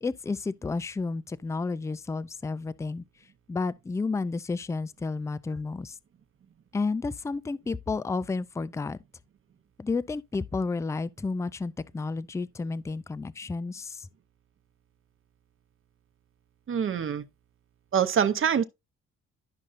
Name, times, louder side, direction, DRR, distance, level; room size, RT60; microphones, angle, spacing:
voice 1, 0.0-3.0 3.5-5.9 6.7-9.0 9.8-14.1, left 4 dB, 10° left, 0.4 m, -31 dB
voice 2, 16.7-17.2 17.9-18.6, right 8 dB, 45° right, 0.9 m, -25 dB
11.5 x 5.3 x 2.5 m
cardioid pair, 90°, 30 cm